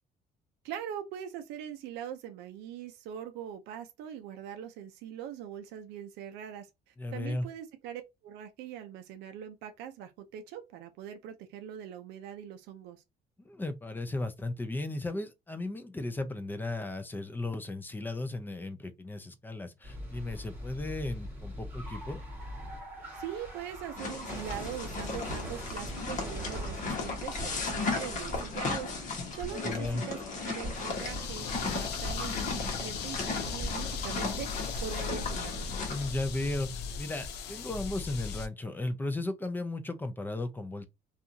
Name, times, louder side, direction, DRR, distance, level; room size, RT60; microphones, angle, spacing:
voice 1, 0.6-13.0 23.1-28.9 29.3-35.7, right 9 dB, 90° right, 0.5 m, -42 dB
voice 2, 7.0-7.5 13.4-22.2 29.6-30.0 35.9-40.8, left 2 dB, 10° left, 0.5 m, -35 dB
sound 1, 19.8-34.0, equal, 10° right, 1.4 m, -42 dB
sound 2, 24.0-36.1, left 4 dB, 50° left, 1.1 m, -36 dB
sound 3, 30.7-38.5, left 5 dB, 75° left, 0.5 m, -37 dB
2.7 x 2.4 x 2.5 m
cardioid pair, 110°, 17 cm